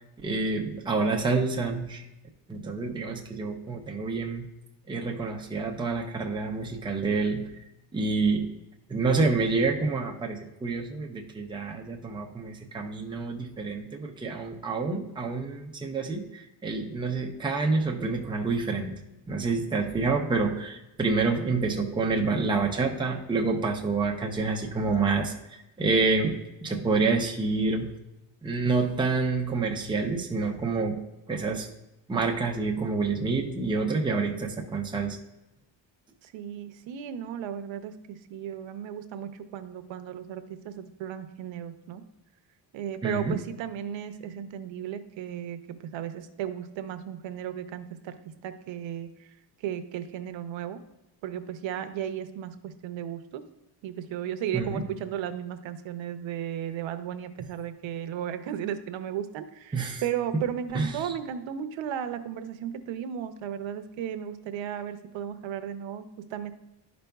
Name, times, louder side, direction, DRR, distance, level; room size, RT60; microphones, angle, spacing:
voice 1, 0.2-2.1 2.5-4.5 4.9-7.5 7.9-8.5 8.9-27.9 28.4-31.0 31.3-31.7 32.1-35.2 43.0-43.4 54.5-54.8 59.7-60.0 60.7-61.0, right 3 dB, 10° right, 1 dB, 0.5 m, -28 dB
voice 2, 36.2-42.0 42.7-48.2 48.4-49.3 49.6-50.8 51.2-53.4 53.8-66.5, right 9 dB, 80° right, 9 dB, 0.7 m, -35 dB
11.5 x 5.1 x 2.3 m, 0.93 s
cardioid pair, 155°, 46 cm